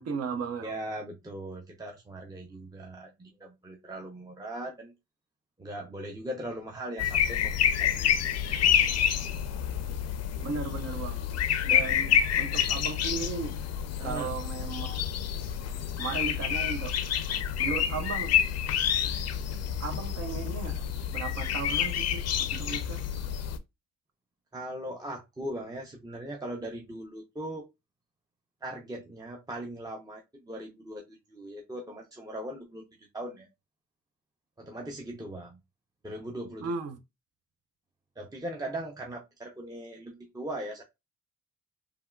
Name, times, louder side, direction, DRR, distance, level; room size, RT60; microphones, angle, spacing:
voice 1, 0.0-0.7 10.4-11.2 11.6-13.6 14.0-15.0 16.0-16.9 17.6-18.4 19.8-20.8 21.1-22.2 22.5-23.0 36.6-37.0, right 5 dB, 55° right, 0.7 m, -36 dB
voice 2, 0.6-4.9 5.6-8.3 8.6-8.8 14.0-14.3 24.5-27.7 28.6-32.9 33.1-33.5 34.6-35.6 36.0-36.7 38.2-40.8, right 1 dB, 15° right, 0.5 m, -39 dB
sound 1, 7.0-23.6, left 9 dB, 55° left, 0.5 m, -28 dB
3.4 x 2.3 x 2.3 m
cardioid pair, 90°, 30 cm